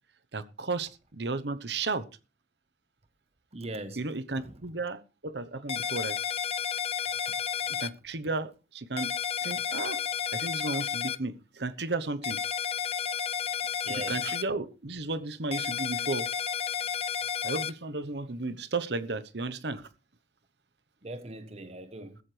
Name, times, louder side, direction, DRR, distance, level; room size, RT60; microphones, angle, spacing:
voice 1, 0.3-2.0 4.0-6.2 7.7-9.1 9.4-10.0 10.3-12.4 13.9-16.3 17.4-19.8, right 3 dB, 70° right, 1.1 m, -34 dB
voice 2, 3.5-4.0 4.4-4.6 13.8-14.3 21.0-22.2, right 2 dB, 35° right, 1.1 m, -40 dB
sound 1, 5.7-7.9 9.0-11.2 12.2-14.4 15.5-17.7, left 7 dB, 35° left, 0.6 m, -32 dB
15.5 x 14.0 x 3.4 m
head